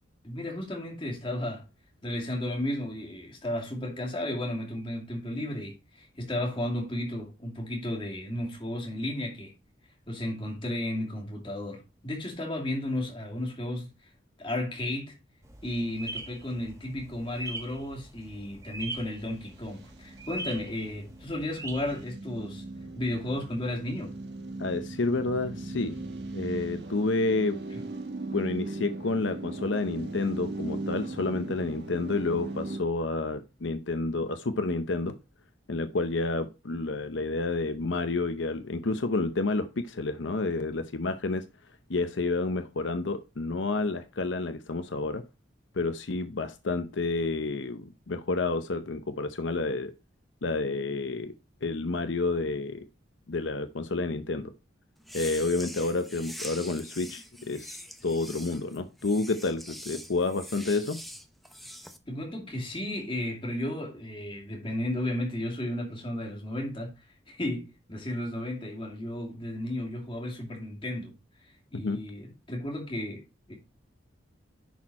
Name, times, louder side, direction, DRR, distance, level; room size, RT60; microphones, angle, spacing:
voice 1, 0.2-1.6 2.0-9.5 10.1-13.9 14.4-15.1 15.6-22.6 23.0-24.2 62.1-66.9 67.3-71.1 71.7-73.5, left 1 dB, 30° left, 2.6 m, -33 dB
sound 1, 15.4-22.0, right 2 dB, 15° right, 1.7 m, -42 dB
sound 2, 19.5-32.8, right 2 dB, 60° right, 1.4 m, -39 dB
voice 2, 24.6-26.0 26.3-27.6 28.3-35.1 35.7-41.4 41.9-45.2 45.7-49.9 50.4-51.3 51.6-52.8 53.3-54.5 55.1-61.0 71.7-72.0, left 3 dB, 80° left, 0.8 m, -29 dB
sound 3, 55.0-62.0, equal, ahead, 0.7 m, -44 dB
10.5 x 4.5 x 4.2 m
head